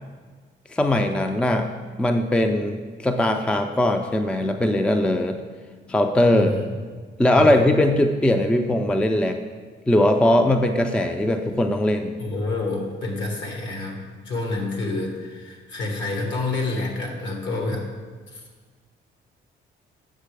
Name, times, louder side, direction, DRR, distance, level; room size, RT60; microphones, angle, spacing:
voice 1, 0.7-5.4 5.9-6.5 7.2-9.4 9.9-12.2, left 1 dB, 5° left, 6 dB, 0.4 m, -20 dB
voice 2, 6.3-6.6 7.3-7.5 12.2-14.0 14.2-17.9 18.3-18.4, left 2 dB, 70° left, 1 dB, 1.6 m, -28 dB
7.4 x 6.0 x 3.3 m, 1.5 s
cardioid pair, 90°, 20 cm